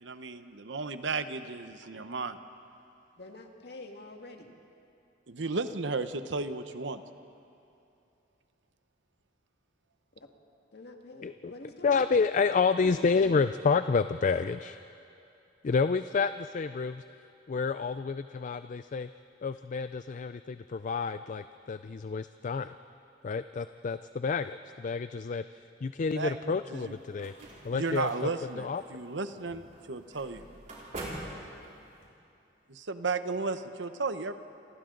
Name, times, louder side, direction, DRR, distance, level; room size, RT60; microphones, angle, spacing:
voice 1, 0.0-2.4 5.3-7.0 26.1-26.9 27.7-30.5 32.7-34.3, right 3 dB, 80° right, 10 dB, 0.9 m, -34 dB
voice 2, 3.2-4.5 10.2-10.3 10.7-12.0 12.8-13.5, left 1 dB, 60° left, 3 dB, 1.9 m, -46 dB
voice 3, 11.8-14.8 15.6-17.0 17.5-19.1 19.4-22.8 23.2-27.3 27.6-28.1 28.6-28.8, left 5 dB, 45° left, 12 dB, 0.4 m, -29 dB
sound 1, 26.7-32.0, right 1 dB, 45° right, 5.0 m, -45 dB
29.5 x 25.5 x 3.9 m, 2.7 s
head